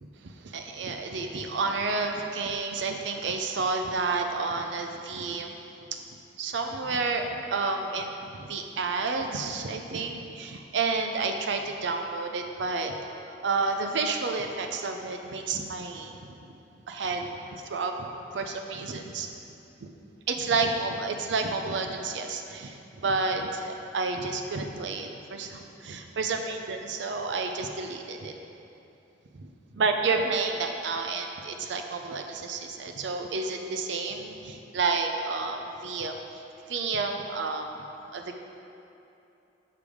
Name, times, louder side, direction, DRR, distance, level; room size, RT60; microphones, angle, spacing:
voice 1, 0.0-5.5 6.4-12.9 13.3-16.1 16.4-16.6 16.9-17.3 17.6-18.1 18.3-19.3 19.8-19.9 20.3-28.3 29.4-37.7 38.1-38.4, right 4 dB, 80° right, 4 dB, 0.5 m, -30 dB
6.6 x 5.2 x 4.9 m, 2.8 s
head